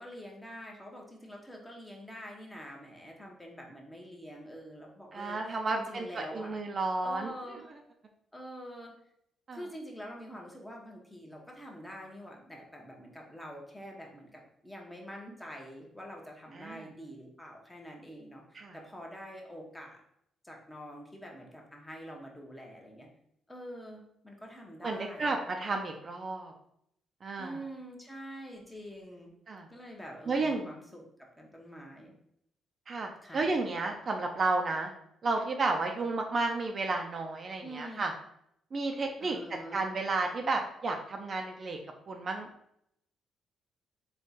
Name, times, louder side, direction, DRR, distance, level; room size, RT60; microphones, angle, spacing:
voice 1, 0.0-6.6 7.0-7.7 8.3-8.9 9.5-20.0 20.4-23.1 23.5-25.4 27.4-29.3 29.7-32.1 33.2-33.5 37.6-38.0 39.2-39.9, equal, 10° left, 0 dB, 0.9 m, -46 dB
voice 2, 5.1-6.1 6.3-7.3 9.5-9.6 16.5-16.9 18.5-18.8 24.8-26.5 27.2-27.6 29.5-29.7 30.3-30.7 32.9-34.9 35.2-38.1 38.7-39.4 39.7-41.8 42.1-42.5, right 3 dB, 45° right, 3 dB, 0.5 m, -32 dB
3.5 x 2.3 x 4.1 m, 0.74 s
cardioid pair, 90°, 0 cm